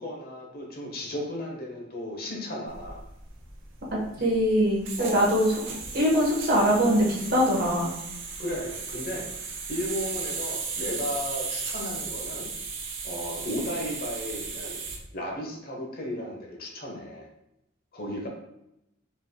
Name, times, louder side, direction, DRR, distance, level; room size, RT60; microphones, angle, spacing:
voice 1, 0.0-3.0 5.0-5.3 8.4-12.5 13.0-14.8 15.1-17.3 17.9-18.3, left 1 dB, 50° left, -1 dB, 1.0 m, -35 dB
sound 1, 2.7-15.0, right 5 dB, 85° right, 0.8 m, -36 dB
voice 2, 4.2-5.5 5.9-7.9, equal, 50° right, -3 dB, 1.2 m, -22 dB
5.3 x 3.3 x 2.2 m, 0.82 s
head